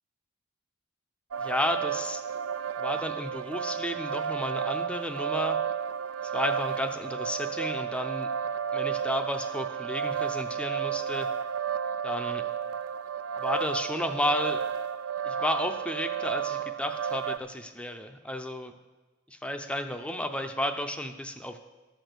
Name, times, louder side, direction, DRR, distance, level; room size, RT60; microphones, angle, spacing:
sound 1, 1.3-17.4, right 7 dB, 70° right, 0.4 m, -32 dB
voice 1, 1.4-2.2 2.8-5.6 6.2-8.3 8.7-11.3 12.0-12.4 13.4-14.6 15.2-18.7 19.3-21.6, left 1 dB, 5° left, 7 dB, 0.5 m, -32 dB
13.0 x 6.2 x 6.7 m, 1.3 s
head